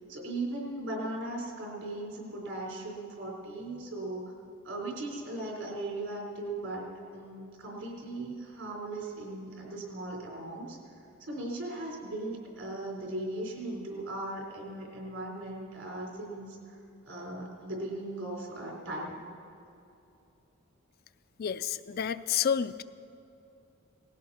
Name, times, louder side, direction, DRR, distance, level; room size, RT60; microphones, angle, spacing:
voice 1, 0.1-4.3 4.6-6.9 7.1-10.8 11.2-16.8 17.1-19.2, right 2 dB, 75° right, -2 dB, 4.2 m, -38 dB
voice 2, 21.4-22.8, left 8 dB, 50° left, 12 dB, 0.4 m, -30 dB
19.0 x 15.5 x 4.3 m, 2.7 s
head